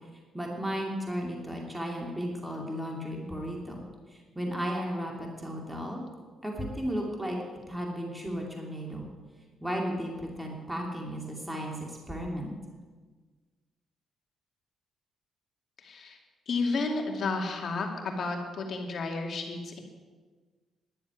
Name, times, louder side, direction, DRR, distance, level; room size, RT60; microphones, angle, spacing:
voice 1, 0.3-6.1 6.4-7.4 7.7-9.1 9.6-12.5, equal, 5° right, -1 dB, 2.5 m, -34 dB
voice 2, 15.8-16.2 16.5-19.8, left 3 dB, 55° left, 2 dB, 2.5 m, -32 dB
11.5 x 7.2 x 9.7 m, 1.4 s
cardioid pair, 90°, 0 cm